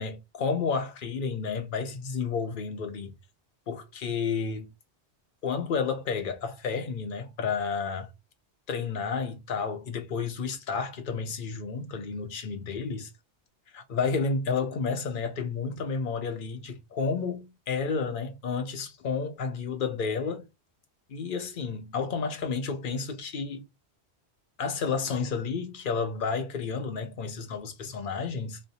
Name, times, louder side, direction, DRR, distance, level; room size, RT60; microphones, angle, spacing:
voice 1, 0.0-3.1 3.7-4.7 5.4-8.1 8.7-13.1 13.7-20.5 21.1-23.6 24.6-28.6, left 5 dB, 50° left, 0.9 m, -31 dB
3.2 x 2.2 x 4.0 m
omnidirectional pair, 1.1 m